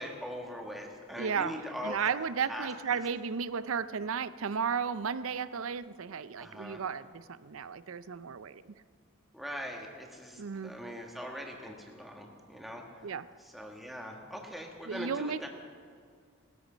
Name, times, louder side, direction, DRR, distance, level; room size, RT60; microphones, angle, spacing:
voice 1, 0.0-2.1 2.5-3.0 6.4-6.8 9.3-13.1 13.4-15.5, equal, ahead, 0 dB, 1.6 m, -41 dB
voice 2, 1.1-8.7 10.4-10.7 13.0-13.3 14.9-15.5, right 6 dB, 80° right, 15 dB, 0.5 m, -34 dB
19.0 x 13.5 x 5.1 m, 2.1 s
head